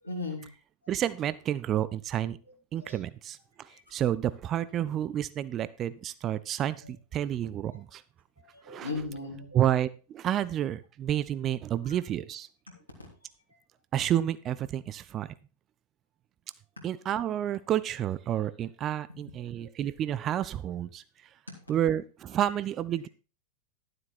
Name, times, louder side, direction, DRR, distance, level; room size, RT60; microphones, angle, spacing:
voice 1, 0.0-0.5 2.8-3.0 3.7-3.8 6.8-6.9 7.7-7.8 8.4-9.6 11.9-12.0 13.2-13.3 16.8-16.9 21.5-21.6, left 3 dB, 85° left, -3 dB, 3.2 m, -38 dB
voice 2, 0.9-2.4 2.7-8.0 8.7-8.9 9.5-12.5 13.9-15.3 16.8-21.0 21.7-23.1, right 11 dB, 30° right, 16 dB, 0.5 m, -30 dB
12.0 x 7.7 x 4.3 m, 0.33 s
figure-of-eight pair, 90°, 0 cm